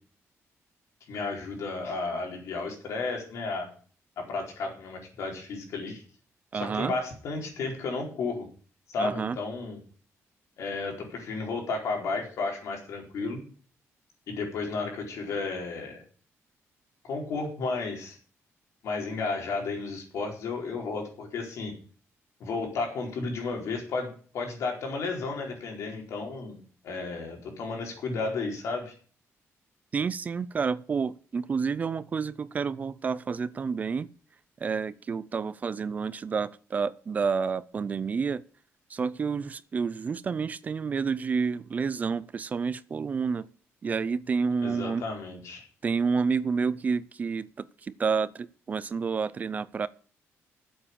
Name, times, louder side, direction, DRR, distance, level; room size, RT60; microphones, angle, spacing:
voice 1, 1.1-3.7 4.2-6.0 6.5-8.5 8.9-9.8 10.6-13.4 14.3-16.0 17.0-18.2 18.8-21.7 22.4-26.6 26.8-28.9 44.6-45.6, left 3 dB, 70° left, 4.4 m, -33 dB
voice 2, 6.5-6.9 9.0-9.4 29.9-34.1 34.6-38.4 38.9-43.5 43.8-45.0 45.8-49.9, right 5 dB, 30° right, 0.4 m, -29 dB
9.8 x 7.9 x 8.7 m
cardioid pair, 165°, 5 cm